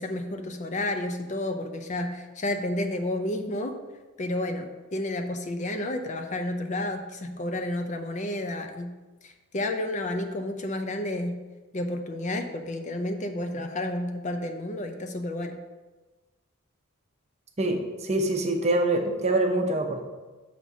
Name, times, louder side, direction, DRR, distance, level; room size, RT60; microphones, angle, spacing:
voice 1, 0.0-3.8 4.2-9.0 9.2-11.4 11.7-15.6, left 1 dB, 35° left, 6 dB, 0.4 m, -31 dB
voice 2, 17.6-20.0, right 2 dB, 30° right, 3 dB, 0.7 m, -25 dB
5.8 x 4.1 x 6.0 m, 1.2 s
head